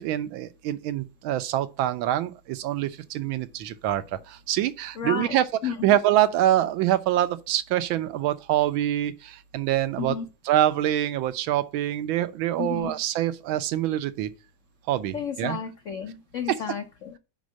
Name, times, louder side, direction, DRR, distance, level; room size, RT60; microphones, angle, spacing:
voice 1, 0.0-10.1 10.4-14.3 14.9-15.6 16.5-16.6, right 12 dB, 85° right, 1.5 m, -25 dB
voice 2, 5.0-5.4 5.6-5.9 10.0-10.3 12.6-13.0 15.1-17.2, left 7 dB, 80° left, 0.7 m, -32 dB
5.2 x 4.7 x 6.1 m
omnidirectional pair, 2.2 m